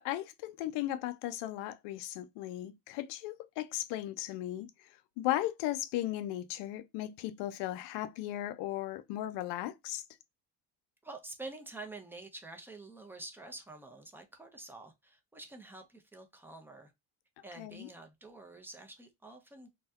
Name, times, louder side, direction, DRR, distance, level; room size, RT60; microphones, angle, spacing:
voice 1, 0.0-4.9 5.2-10.0 17.6-17.9, left 14 dB, 80° left, 0.5 m, -36 dB
voice 2, 11.0-16.9 17.4-19.7, right 2 dB, 5° right, 0.5 m, -48 dB
2.7 x 2.1 x 2.3 m
supercardioid pair, 95°, 43 cm